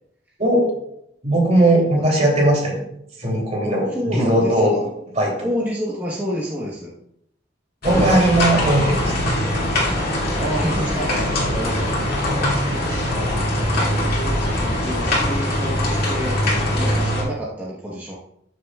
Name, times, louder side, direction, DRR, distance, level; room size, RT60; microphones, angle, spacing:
voice 1, 0.4-0.7 1.2-2.8 3.2-4.8 5.1-5.5 7.8-9.2 12.1-13.5, right 1 dB, 40° right, -1 dB, 3.0 m, -19 dB
voice 2, 3.6-4.8 5.4-6.9 7.8-8.2 10.4-12.0 13.7-18.2, equal, 10° right, -6 dB, 1.2 m, -29 dB
sound 1, 7.8-17.2, left 1 dB, 55° left, 2.6 m, -22 dB
13.5 x 6.7 x 2.4 m, 0.75 s
head